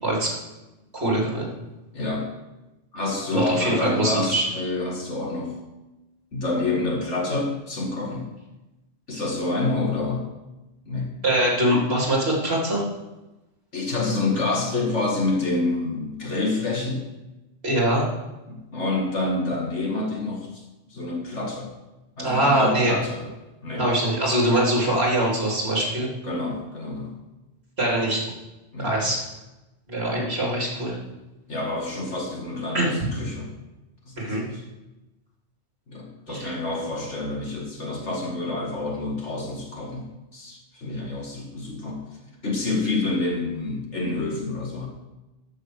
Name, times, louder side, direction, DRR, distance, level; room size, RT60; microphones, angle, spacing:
voice 1, 0.0-0.4 0.9-1.5 3.3-4.5 11.2-12.8 17.6-18.1 22.2-23.0 23.8-26.1 27.8-28.2 28.8-29.2 29.9-31.0 32.7-32.9 34.2-34.4 36.3-36.5, right 1 dB, 55° right, -3 dB, 3.6 m, -23 dB
voice 2, 1.9-2.3 2.9-5.6 6.3-8.3 9.1-10.3 10.9-11.1 13.7-17.0 18.5-20.6 20.9-21.7 22.2-23.3 23.6-23.9 26.2-27.2 28.7-29.1 30.1-30.3 31.5-33.5 34.1-34.6 35.9-44.9, left 2 dB, 65° left, -1 dB, 2.6 m, -28 dB
13.5 x 6.3 x 6.5 m, 1.0 s
omnidirectional pair, 1.3 m